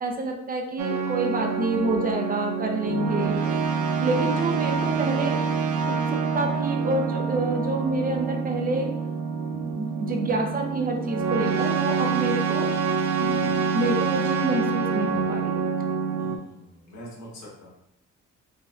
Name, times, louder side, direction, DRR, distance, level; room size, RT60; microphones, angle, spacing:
voice 1, 0.0-3.4 4.0-5.4 5.9-8.9 9.5-12.7 13.2-15.6, right 2 dB, 30° right, 2 dB, 0.6 m, -28 dB
sound 1, 0.8-16.4, right 5 dB, 80° right, 0.5 m, -26 dB
voice 2, 16.2-17.7, equal, 85° left, -5 dB, 1.4 m, -44 dB
3.9 x 2.2 x 2.4 m, 0.80 s
cardioid pair, 90°, 30 cm